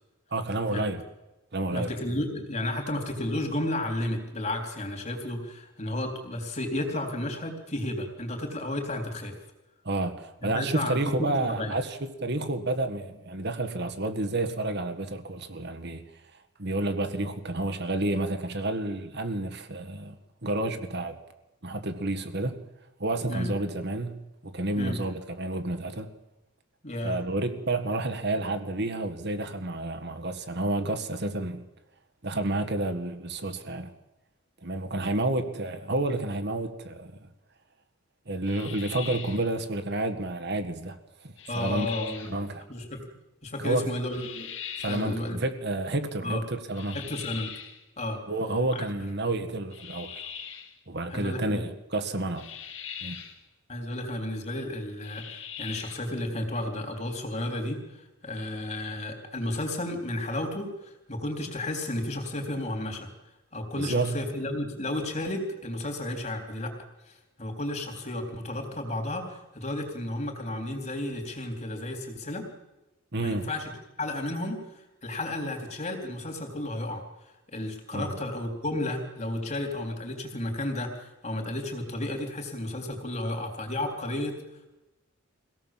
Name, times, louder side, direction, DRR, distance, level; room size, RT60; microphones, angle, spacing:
voice 1, 0.3-1.0 1.5-1.9 9.8-16.0 16.6-20.2 20.4-21.2 21.6-22.6 23.0-26.1 27.0-31.6 32.2-33.9 34.6-37.2 38.3-41.9 42.3-42.6 43.6-43.9 44.8-47.0 48.3-50.2 50.9-52.5 53.0-53.2 63.7-64.2 73.1-73.5 77.9-78.1, right 2 dB, 50° right, 1.8 m, -30 dB
voice 2, 1.7-9.3 10.4-11.7 23.3-23.5 24.7-25.0 26.8-27.2 34.9-35.2 41.5-42.4 42.7-43.0 43.4-44.5 44.9-45.4 46.2-46.4 46.9-47.5 48.0-48.2 48.7-48.9 51.1-51.6 53.7-63.1 63.5-66.7 67.0-72.5 73.2-73.7 74.0-77.0 77.5-84.4, left 1 dB, 35° left, 3.8 m, -32 dB
sound 1, 38.4-39.5 41.4-42.4 44.1-45.1 46.7-47.8 49.7-50.7 52.4-53.4 55.0-56.1, left 8 dB, 60° left, 2.6 m, -41 dB
24.0 x 17.5 x 7.6 m
head